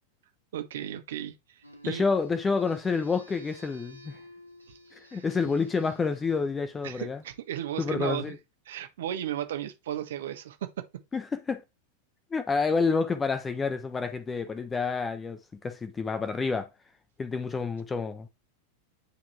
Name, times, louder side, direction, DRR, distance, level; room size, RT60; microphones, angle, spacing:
voice 1, 0.5-2.0 5.1-5.2 6.8-8.4 8.6-10.8, right 11 dB, 60° right, 1.5 m, -35 dB
sound 1, 1.6-7.6, equal, 90° right, 2.8 m, -54 dB
voice 2, 1.9-4.2 5.1-7.2 7.8-8.4 11.1-11.6 12.3-15.4 15.6-16.7 17.2-18.3, left 4 dB, 15° left, 1.2 m, -28 dB
10.5 x 4.7 x 4.5 m
figure-of-eight pair, 90°, 0 cm